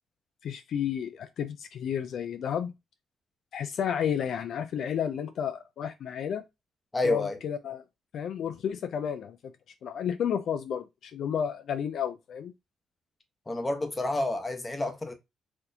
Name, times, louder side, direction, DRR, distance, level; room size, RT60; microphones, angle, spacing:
voice 1, 0.4-2.7 3.5-6.4 7.0-7.8 8.1-9.5 9.8-12.5, left 8 dB, 65° left, 0.4 m, -32 dB
voice 2, 6.9-7.4 13.5-15.1, left 2 dB, 20° left, 0.9 m, -29 dB
4.1 x 2.8 x 2.6 m
cardioid pair, 90°, 0 cm